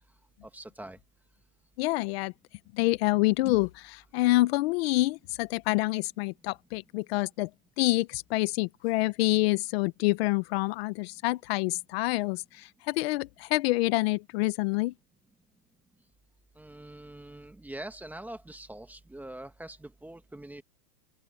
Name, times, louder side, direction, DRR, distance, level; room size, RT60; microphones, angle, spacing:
voice 1, 0.5-1.0 16.6-20.6, right 1 dB, 5° right, 1.1 m, -43 dB
voice 2, 1.8-2.3 2.7-7.5 7.8-14.9, left 20 dB, 40° left, 1.0 m, -27 dB
open air
hypercardioid pair, 150°, 48 cm